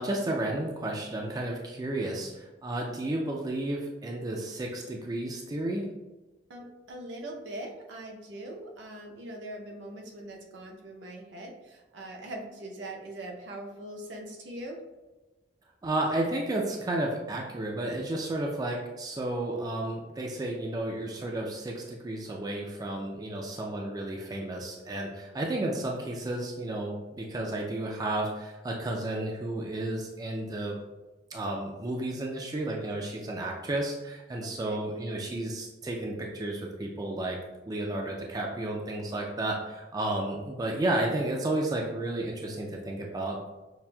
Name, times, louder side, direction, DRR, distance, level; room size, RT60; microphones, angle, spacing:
voice 1, 0.0-5.9 15.8-30.8 31.3-37.4 37.7-43.5, right 1 dB, 20° right, 0 dB, 0.3 m, -32 dB
voice 2, 6.5-14.8 34.4-34.8, right 1 dB, 70° right, 1 dB, 0.6 m, -42 dB
5.6 x 2.5 x 2.2 m, 1.1 s
head